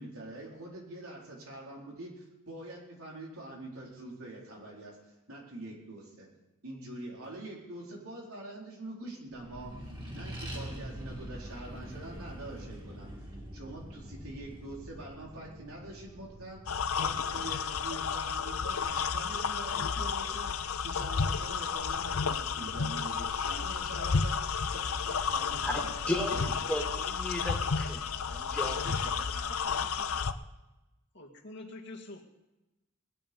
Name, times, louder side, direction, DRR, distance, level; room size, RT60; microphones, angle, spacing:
voice 1, 0.0-5.0 5.3-6.3 6.6-9.7 10.2-13.1 13.5-26.5 28.8-30.2, right 1 dB, 85° right, -2 dB, 4.4 m, -45 dB
Accelerating revving vroom, 9.3-20.2, equal, 20° right, 2.6 m, -45 dB
sound 1, 16.7-30.3, left 6 dB, 85° left, 0.7 m, -32 dB
voice 2, 25.6-28.9, left 1 dB, 5° left, -2 dB, 2.2 m, -35 dB
voice 3, 31.1-32.3, left 2 dB, 55° left, 1 dB, 2.0 m, -46 dB
19.5 x 10.0 x 5.4 m, 1.0 s
head